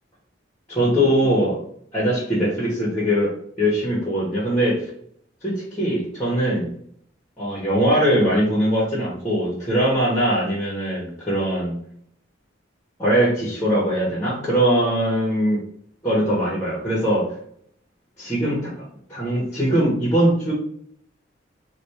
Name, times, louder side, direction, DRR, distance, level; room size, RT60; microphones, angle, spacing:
voice 1, 0.7-1.6 1.9-3.3 3.6-4.9 5.4-6.7 7.4-11.7 13.0-15.6 16.0-17.4 18.2-18.7 19.1-20.5, equal, 15° left, -6 dB, 1.4 m, -21 dB
4.1 x 2.6 x 3.2 m, 0.65 s
head